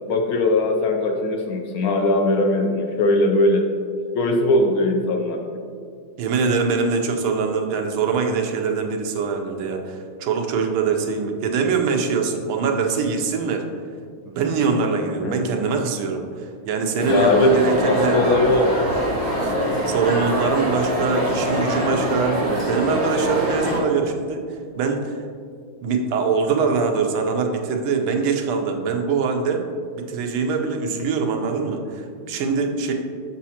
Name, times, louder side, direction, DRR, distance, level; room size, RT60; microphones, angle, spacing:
voice 1, 0.1-3.6 4.1-5.4 15.2-15.4 17.1-18.7, left 2 dB, 85° left, 2 dB, 0.8 m, -20 dB
voice 2, 6.2-13.6 14.2-18.2 19.4-19.5 19.8-25.2 25.8-29.6 30.0-32.9, right 5 dB, 85° right, 3 dB, 1.6 m, -23 dB
sound 1, 17.0-23.8, right 1 dB, 35° right, 1.6 m, -23 dB
7.2 x 6.2 x 2.8 m, 2.2 s
omnidirectional pair, 2.3 m